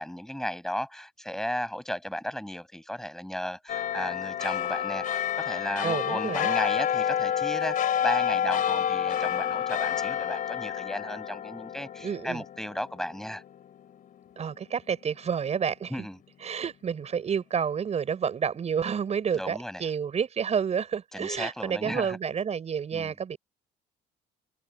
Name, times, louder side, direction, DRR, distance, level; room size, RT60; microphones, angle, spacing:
voice 1, 0.0-7.8 8.0-13.4 15.9-16.2 19.3-19.8 21.1-22.2 22.9-23.1, equal, 5° left, 5.9 m, -34 dB
sound 1, 3.7-14.5 14.9-15.0, left 9 dB, 55° left, 3.3 m, -29 dB
voice 2, 5.8-6.5 12.0-12.4 14.4-15.9 16.4-23.4, right 7 dB, 40° right, 6.0 m, -29 dB
cardioid pair, 110°, 17 cm